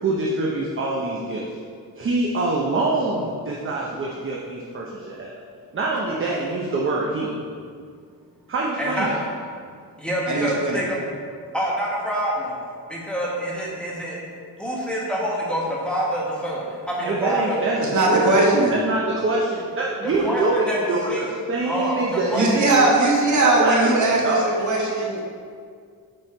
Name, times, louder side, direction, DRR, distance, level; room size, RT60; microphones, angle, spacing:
voice 1, 0.0-1.5 1.9-5.4 5.7-7.3 8.5-9.2 17.0-22.9 23.4-24.5, right 2 dB, 35° right, -3 dB, 0.7 m, -25 dB
voice 2, 8.8-9.1 10.0-11.2 11.5-12.6 12.9-14.2 14.6-17.6 20.0-21.3 21.6-23.1, equal, 5° left, -6 dB, 1.4 m, -26 dB
voice 3, 10.3-10.8 17.8-18.7 22.3-25.2, right 2 dB, 50° right, -2 dB, 1.3 m, -19 dB
7.9 x 4.4 x 4.4 m, 2.1 s
wide cardioid pair, 140°, 38 cm